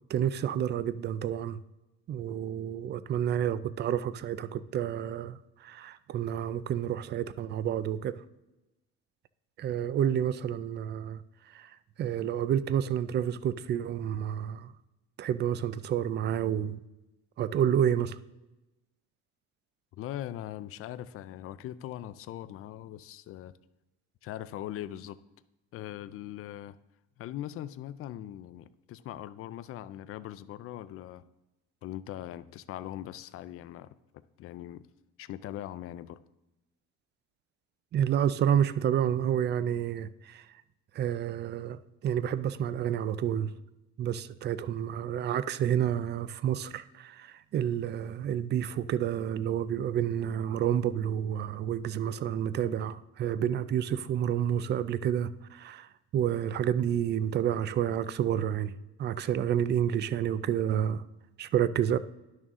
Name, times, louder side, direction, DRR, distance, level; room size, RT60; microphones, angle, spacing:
voice 1, 0.1-1.6 2.1-8.2 9.6-14.7 15.2-16.8 17.4-18.2 37.9-40.5 40.9-43.5 44.0-58.7 59.0-61.0 61.4-62.0, right 9 dB, 35° right, 0.4 m, -29 dB
voice 2, 19.9-23.5 24.2-25.2 25.7-26.8 27.2-31.2 31.8-33.9 34.4-34.9 35.2-36.2, left 12 dB, 50° left, 0.4 m, -40 dB
10.5 x 6.4 x 3.6 m
cardioid pair, 140°, 30 cm